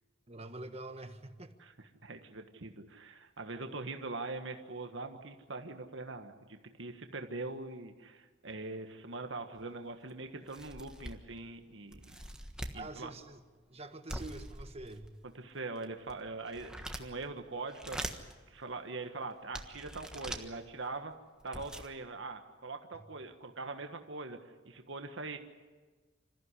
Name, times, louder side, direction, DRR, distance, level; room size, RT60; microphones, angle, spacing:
voice 1, 0.3-1.5 3.6-3.8 12.7-13.4 13.7-15.1 22.9-23.1, right 2 dB, 30° right, 7 dB, 1.4 m, -46 dB
voice 2, 1.6-12.2 12.7-13.1 15.3-18.2 18.5-21.1 21.4-25.4, right 3 dB, 70° right, 5 dB, 1.5 m, -42 dB
sound 1, 9.6-9.7 10.1-10.2 10.5-11.4 11.9-12.8 14.1-15.2 15.8-17.3 17.7-18.3 19.0-19.1 19.5-20.5 21.1-21.2 21.4-21.9, right 1 dB, 5° right, 1.4 m, -43 dB
26.5 x 15.0 x 9.9 m, 1.3 s
head